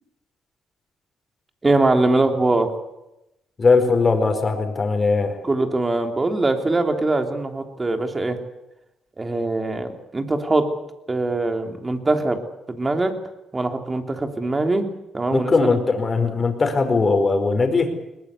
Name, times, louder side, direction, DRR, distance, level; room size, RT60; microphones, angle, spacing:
voice 1, 1.6-2.7 5.4-8.4 9.2-10.7 11.1-12.4 12.7-13.1 13.5-14.9 15.1-15.5, right 2 dB, 25° right, 5 dB, 3.4 m, -22 dB
voice 2, 3.6-5.4 15.3-17.9, left 4 dB, 35° left, 7 dB, 4.7 m, -19 dB
21.5 x 20.0 x 8.4 m, 0.92 s
cardioid pair, 90°, 0 cm